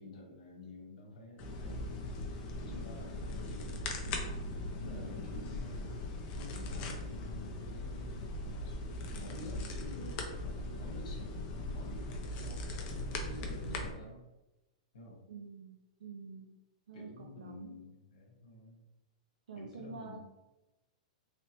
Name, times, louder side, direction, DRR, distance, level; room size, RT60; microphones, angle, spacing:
voice 1, 0.0-2.1 2.6-4.2 4.8-6.0 6.4-8.3 9.0-14.2 14.9-15.2 16.9-18.8 19.5-20.2, left 2 dB, 70° left, -1 dB, 1.2 m, -49 dB
sound 1, 1.4-13.9, left 2 dB, 30° left, 0.4 m, -39 dB
voice 2, 4.8-5.3 15.3-16.6 16.9-17.8 19.5-20.2, right 5 dB, 85° right, 1 dB, 0.5 m, -48 dB
3.2 x 2.9 x 2.9 m, 0.99 s
supercardioid pair, 170°, 4 cm